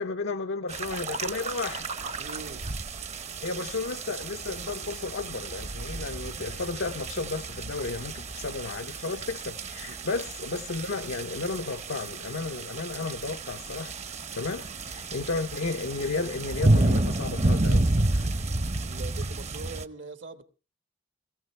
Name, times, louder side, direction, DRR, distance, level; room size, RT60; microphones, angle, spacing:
voice 1, 0.0-1.9 3.4-14.0 14.3-18.3, left 3 dB, 90° left, 0.7 m, -33 dB
sound 1, 0.7-19.8, right 2 dB, 40° right, 0.7 m, -30 dB
voice 2, 2.2-2.8 9.9-10.0 18.8-20.4, right 4 dB, 75° right, 1.3 m, -42 dB
21.5 x 15.5 x 3.2 m
head